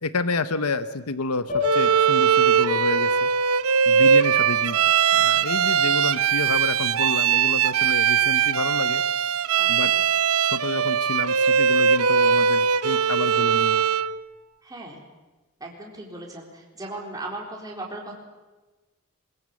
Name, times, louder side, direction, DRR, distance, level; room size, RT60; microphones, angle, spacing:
voice 1, 0.0-3.3 3.9-4.8 5.1-9.0 9.7-9.9 10.4-13.8, left 3 dB, 85° left, 13 dB, 1.0 m, -29 dB
sound 1, 1.5-5.8, left 4 dB, 35° left, 5.8 m, -33 dB
Bowed string instrument, 1.6-14.1, right 7 dB, 70° right, 0.7 m, -20 dB
voice 2, 9.5-10.0 14.6-15.0 15.6-18.1, right 2 dB, 15° right, -1 dB, 4.0 m, -37 dB
22.0 x 21.5 x 8.5 m, 1.2 s
head